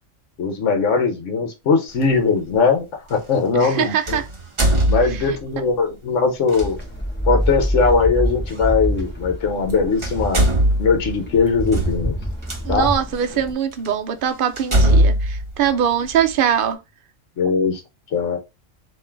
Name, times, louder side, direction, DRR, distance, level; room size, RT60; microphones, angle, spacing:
voice 1, 0.4-4.2 4.9-6.8 7.3-10.5 10.8-12.1 12.7-12.9 17.4-17.8 18.1-18.4, left 4 dB, 70° left, 1.3 m, -20 dB
sound 1, 2.0-2.1 4.1-5.5 6.5-6.7 8.5-8.6 9.6-9.7 10.0-12.6 13.3-13.4 13.8-13.9 14.6-16.3, right 1 dB, 25° right, 1.0 m, -20 dB
voice 2, 3.5-4.2 5.1-5.2 12.6-16.8 17.4-17.5, right 9 dB, 55° right, 0.7 m, -22 dB
sound 2, 6.6-13.5, equal, 10° left, 1.0 m, -26 dB
3.7 x 3.0 x 4.4 m
omnidirectional pair, 1.3 m